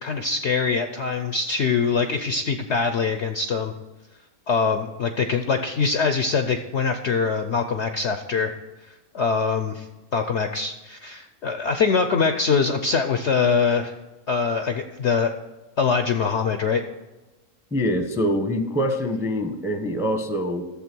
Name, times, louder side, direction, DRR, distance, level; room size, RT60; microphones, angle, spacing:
voice 1, 0.0-3.7 4.5-8.5 9.1-9.9 10.1-13.9 14.3-15.4 15.8-16.8, left 5 dB, 60° left, 7 dB, 0.8 m, -23 dB
voice 2, 17.7-20.6, equal, ahead, 6 dB, 0.7 m, -24 dB
12.0 x 7.3 x 6.1 m, 1.1 s
omnidirectional pair, 1.7 m